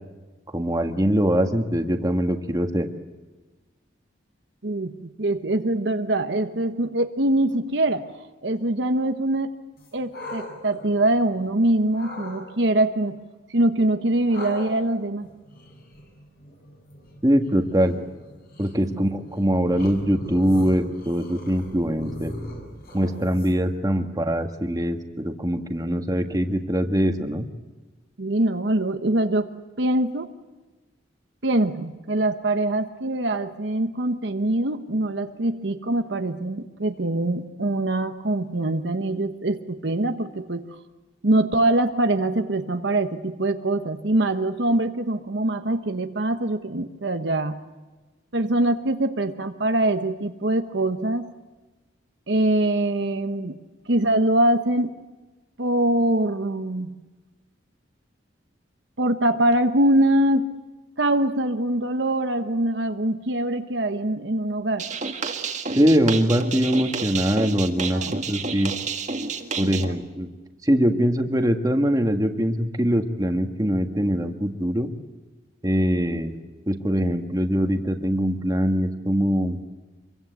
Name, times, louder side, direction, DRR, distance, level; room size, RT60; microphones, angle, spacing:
voice 1, 0.5-2.9 17.2-18.0 18.6-22.3 22.9-27.5 65.8-68.7 69.6-70.3 70.6-74.9 75.6-76.4 76.7-79.6, equal, 20° right, 5 dB, 1.8 m, -22 dB
voice 2, 4.6-8.1 8.4-9.5 9.9-13.2 13.5-15.3 18.9-19.0 28.2-29.5 29.8-30.3 31.4-40.6 41.2-47.6 48.3-51.3 52.3-53.6 53.9-54.9 55.6-56.9 59.0-60.5 61.0-64.9 67.9-68.2 69.6-70.0, right 1 dB, 65° right, 7 dB, 1.2 m, -23 dB
sound 1, 9.8-11.5 11.9-12.4 14.3-23.8, left 1 dB, 55° left, 7.1 m, -40 dB
sound 2, 64.8-69.9, right 4 dB, 40° right, 1.8 m, -30 dB
26.0 x 23.5 x 8.2 m, 1.2 s
head